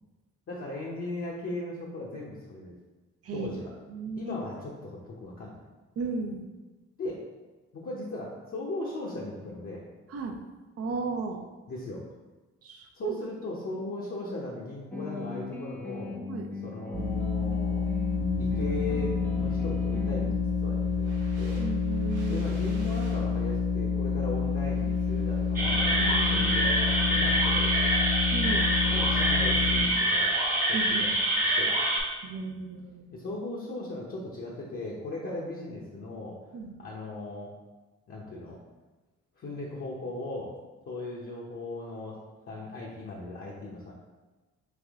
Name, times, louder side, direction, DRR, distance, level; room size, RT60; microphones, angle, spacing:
voice 1, 0.5-2.7 3.3-3.7 4.1-5.6 7.0-7.2 7.7-9.8 11.7-12.0 12.9-16.2 16.6-17.9 18.4-21.6 22.2-27.9 28.9-30.3 30.7-31.1 31.4-31.7 33.1-36.4 36.8-37.5 38.1-38.6 39.4-40.5 40.9-42.2 42.5-43.9, left 2 dB, 45° left, -5 dB, 0.8 m, -38 dB
voice 2, 3.9-4.4 6.0-6.5 10.1-10.4 10.8-11.4 12.6-13.2 16.3-16.5 21.6-22.4 25.9-26.8 28.3-28.7 30.7-31.1 32.2-33.1 36.5-36.7, right 4 dB, 50° right, 4 dB, 0.6 m, -35 dB
sound 1, 14.9-20.4, left 2 dB, 5° left, 0.3 m, -38 dB
sound 2, 16.9-29.8, left 5 dB, 80° right, 1.1 m, -28 dB
sound 3, 25.6-32.0, right 1 dB, 30° right, 1.0 m, -26 dB
3.5 x 3.1 x 3.5 m, 1.2 s
cardioid pair, 90°, 30 cm